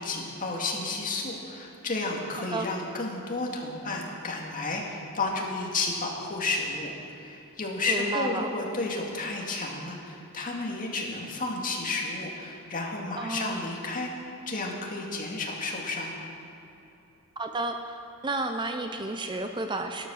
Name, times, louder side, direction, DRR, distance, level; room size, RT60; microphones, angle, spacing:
voice 1, 0.0-14.1 14.5-16.1, left 3 dB, 40° left, -1 dB, 2.2 m, -32 dB
voice 2, 7.9-8.5 13.2-13.6 17.4-20.1, right 2 dB, 20° right, 6 dB, 0.6 m, -32 dB
13.0 x 12.0 x 6.4 m, 2.8 s
head